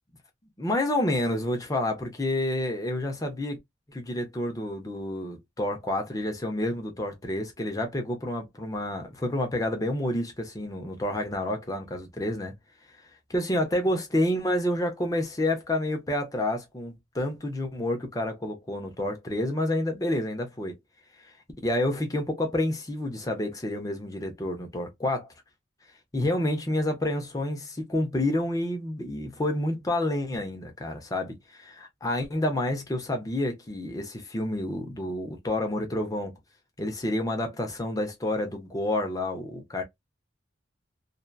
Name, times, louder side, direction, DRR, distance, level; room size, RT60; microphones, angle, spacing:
voice 1, 0.6-3.6 3.9-12.5 13.3-20.7 21.6-25.3 26.1-36.3 36.8-39.8, left 1 dB, 20° left, 0.5 m, -29 dB
2.6 x 2.2 x 2.2 m
head